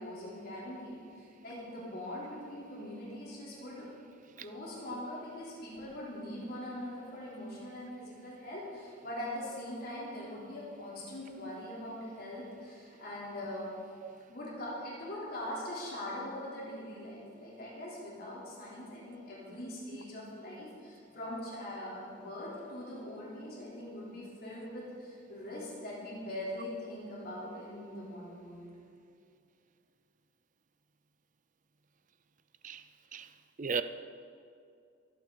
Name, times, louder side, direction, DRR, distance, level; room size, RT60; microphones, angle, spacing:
voice 1, 0.0-3.8 4.4-13.7 14.3-28.7, left 1 dB, 50° left, -6 dB, 3.6 m, -42 dB
voice 2, 4.4-4.5 14.0-14.3 32.6-32.8 33.1-33.3 33.6-33.8, right 5 dB, 40° right, 12 dB, 0.5 m, -36 dB
24.5 x 8.7 x 4.0 m, 2.5 s
head